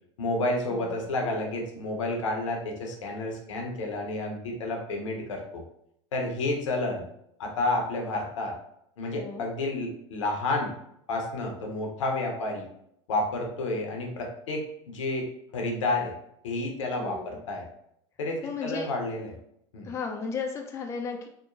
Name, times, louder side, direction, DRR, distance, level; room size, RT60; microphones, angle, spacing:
voice 1, 0.2-5.6 6.1-7.1 7.4-8.6 9.0-10.7 11.1-12.7 13.1-16.1 16.4-17.6 18.2-19.3 19.7-19.9, left 2 dB, 75° left, 1 dB, 0.7 m, -30 dB
voice 2, 9.0-9.4 17.0-17.4 18.4-18.9 19.8-21.3, left 5 dB, 15° left, 3 dB, 0.3 m, -35 dB
2.9 x 2.1 x 2.5 m, 0.73 s
hypercardioid pair, 90°, 16 cm